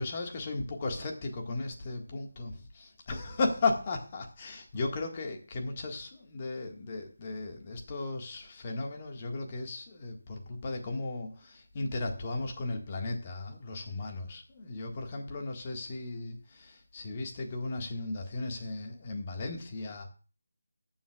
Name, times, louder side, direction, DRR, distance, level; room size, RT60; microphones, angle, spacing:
voice 1, 0.0-20.0, left 3 dB, 30° left, 1.7 m, -35 dB
19.0 x 7.2 x 2.4 m
figure-of-eight pair, 160°, 0 cm